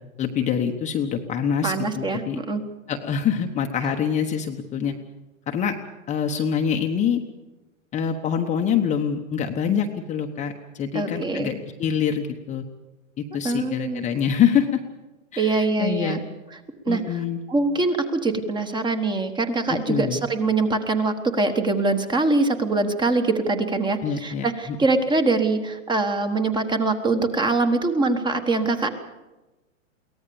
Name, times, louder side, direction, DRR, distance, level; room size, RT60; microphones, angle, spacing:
voice 1, 0.2-2.4 2.9-4.9 5.5-5.7 6.1-7.2 7.9-12.6 13.2-14.8 15.3-16.2 16.9-17.4 19.7-20.3 24.0-24.8, left 7 dB, 20° left, 4 dB, 1.1 m, -25 dB
voice 2, 1.6-2.6 10.9-11.5 13.4-14.0 15.4-16.2 16.9-17.2 17.5-28.9, right 3 dB, 10° right, 8 dB, 1.4 m, -23 dB
23.0 x 17.5 x 7.0 m, 1.1 s
hypercardioid pair, 135°, 40 cm